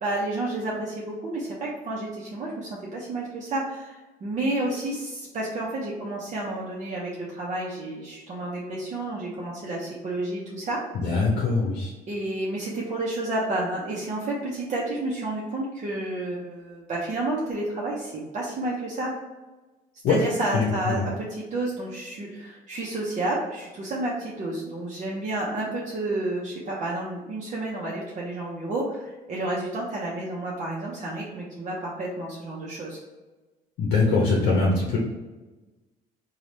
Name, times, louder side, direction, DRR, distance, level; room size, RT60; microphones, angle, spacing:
voice 1, 0.0-10.8 12.1-19.1 20.1-33.0, right 2 dB, 45° right, -4 dB, 0.8 m, -30 dB
voice 2, 11.0-11.9 20.0-20.2 20.5-21.1 33.8-35.0, left 3 dB, 70° left, -3 dB, 0.8 m, -22 dB
3.2 x 2.4 x 4.1 m, 1.2 s
cardioid pair, 110°, 17 cm